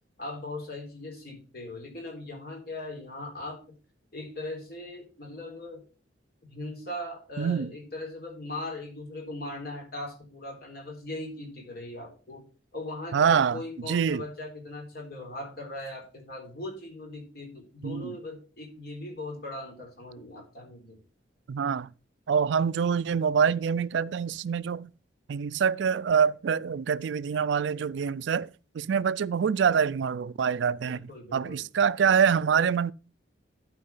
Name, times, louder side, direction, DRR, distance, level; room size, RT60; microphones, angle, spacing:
voice 1, 0.2-3.6 4.1-5.8 6.5-12.5 12.7-21.0 30.8-31.6, left 2 dB, 55° left, 3.8 m, -39 dB
voice 2, 7.4-7.7 13.1-14.2 17.8-18.1 21.5-21.9 22.3-24.9 25.3-28.5 28.7-32.9, right 7 dB, 75° right, 0.4 m, -25 dB
12.0 x 4.8 x 5.4 m
head